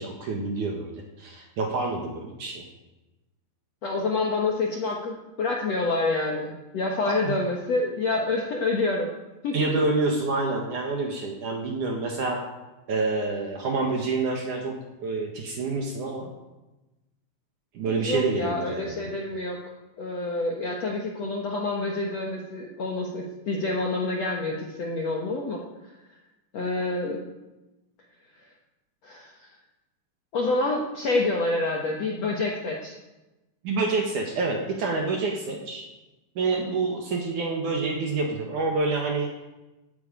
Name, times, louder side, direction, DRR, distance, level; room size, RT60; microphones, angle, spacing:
voice 1, 0.0-2.6 7.0-7.3 9.5-12.4 12.9-16.3 17.7-19.1 33.6-35.8 36.4-39.3, right 3 dB, 60° right, 2 dB, 2.4 m, -27 dB
voice 2, 3.8-9.1 9.4-9.8 17.8-19.6 20.0-25.6 26.5-27.2 29.0-29.3 30.3-33.0, left 2 dB, 75° left, 0 dB, 1.5 m, -27 dB
14.5 x 9.2 x 9.1 m, 1.1 s
omnidirectional pair, 5.3 m